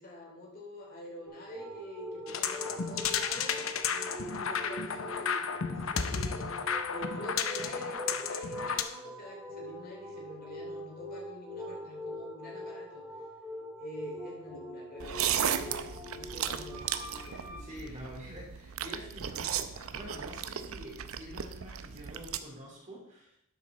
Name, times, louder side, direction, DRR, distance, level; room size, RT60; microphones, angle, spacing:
voice 1, 0.0-6.5 6.9-13.1 13.8-17.6 17.9-18.0, equal, 45° left, -2 dB, 2.9 m, -46 dB
sound 1, 1.3-17.6, left 1 dB, ahead, 3.1 m, -43 dB
sound 2, 2.3-8.8, left 6 dB, 65° left, 0.8 m, -33 dB
sound 3, 15.0-22.4, right 8 dB, 75° right, 0.6 m, -35 dB
voice 2, 17.6-23.3, equal, 35° right, -3 dB, 3.2 m, -46 dB
12.0 x 6.7 x 4.2 m, 0.76 s
head